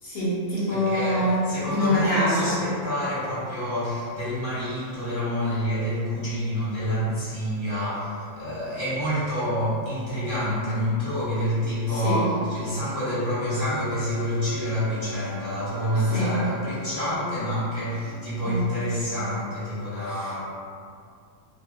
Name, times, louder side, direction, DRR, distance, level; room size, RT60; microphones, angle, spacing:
voice 1, 0.0-1.4 1.7-2.5 11.9-12.3 16.1-16.4 18.4-18.7 20.1-20.4, equal, 55° left, -9 dB, 0.9 m, -25 dB
voice 2, 0.6-20.4, equal, 25° left, -12 dB, 0.7 m, -28 dB
sound 1, 10.8-18.8, left 1 dB, 80° right, 1.0 m, -41 dB
2.7 x 2.4 x 2.3 m, 2.3 s
omnidirectional pair, 1.5 m